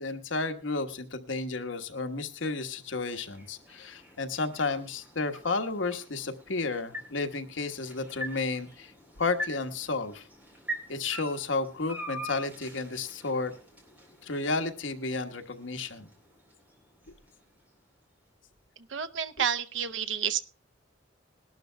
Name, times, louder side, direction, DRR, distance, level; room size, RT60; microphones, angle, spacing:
voice 1, 0.0-8.9 9.2-10.3 10.9-13.5 14.2-16.1, left 3 dB, 85° left, 7 dB, 1.3 m, -32 dB
sound 1, 1.9-18.0, equal, 10° right, 3.4 m, -45 dB
voice 2, 18.9-20.4, right 8 dB, 75° right, 11 dB, 0.7 m, -30 dB
21.5 x 12.0 x 2.2 m, 0.37 s
head